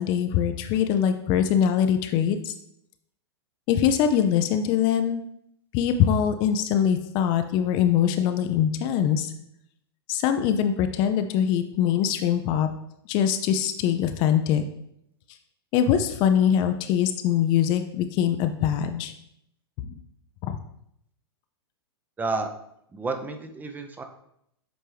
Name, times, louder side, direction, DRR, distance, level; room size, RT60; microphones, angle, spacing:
voice 1, 0.0-2.5 3.7-5.2 5.7-9.3 10.1-12.7 13.1-14.6 15.7-19.1 19.8-20.0 20.4-20.6, left 9 dB, 35° left, 8 dB, 0.5 m, -23 dB
voice 2, 22.2-22.5 22.9-24.0, right 3 dB, 10° right, 6 dB, 0.6 m, -30 dB
7.7 x 4.3 x 3.3 m, 0.75 s
figure-of-eight pair, 100°, 14 cm